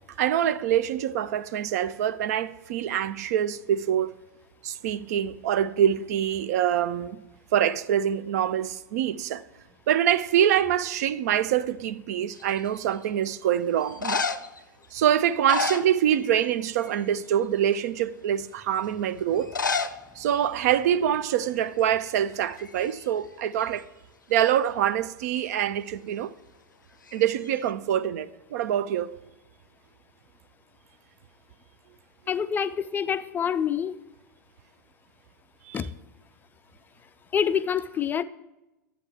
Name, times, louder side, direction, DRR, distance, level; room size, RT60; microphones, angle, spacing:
voice 1, 0.2-4.1 4.6-7.2 7.5-9.4 9.9-14.2 14.9-19.5 20.2-23.8 24.3-26.3 27.1-29.2 35.7-35.8, right 10 dB, 55° right, 0.5 m, -25 dB
sound 1, 12.4-12.9 13.8-14.6 15.3-16.5 16.8-17.1 17.7-17.8 19.4-20.0 20.3-20.4 20.6-20.7 21.4-21.6 21.9-23.1 27.1-27.7, left 4 dB, 85° left, 0.5 m, -31 dB
voice 2, 32.3-34.0 35.7-35.9 37.3-38.2, left 8 dB, 20° left, 0.3 m, -26 dB
12.0 x 8.7 x 3.4 m
figure-of-eight pair, 95°, 10 cm